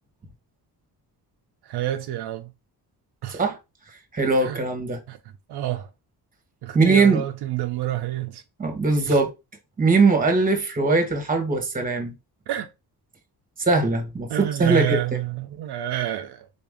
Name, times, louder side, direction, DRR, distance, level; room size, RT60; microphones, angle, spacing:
voice 1, 1.7-2.5 3.2-3.4 4.4-4.6 5.1-5.2 5.5-5.9 6.6-8.4 9.1-9.2 12.5-12.7 14.3-16.5, right 13 dB, 75° right, 0.5 m, -28 dB
voice 2, 4.1-5.0 6.7-7.2 8.6-9.3 9.8-12.1 13.6-15.0, right 3 dB, 20° right, 1.0 m, -20 dB
4.0 x 2.6 x 3.4 m
cardioid pair, 135°, 40 cm